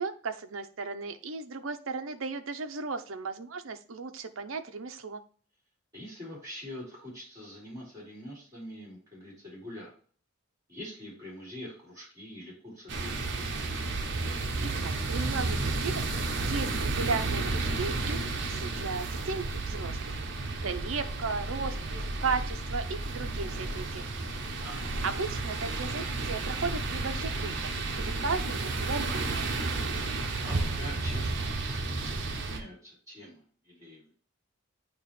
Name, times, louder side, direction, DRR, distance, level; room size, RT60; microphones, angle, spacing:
voice 1, 0.0-5.2 14.6-16.1 16.4-20.0 20.2-20.3 20.6-24.4 25.0-29.6, right 4 dB, 85° right, 8 dB, 0.7 m, -35 dB
voice 2, 5.9-9.9 10.7-13.5 24.6-25.0 30.0-34.1, left 1 dB, 15° right, -6 dB, 3.7 m, -45 dB
sound 1, 12.9-32.6, right 3 dB, 60° right, 0.9 m, -32 dB
8.9 x 3.0 x 4.2 m, 0.42 s
head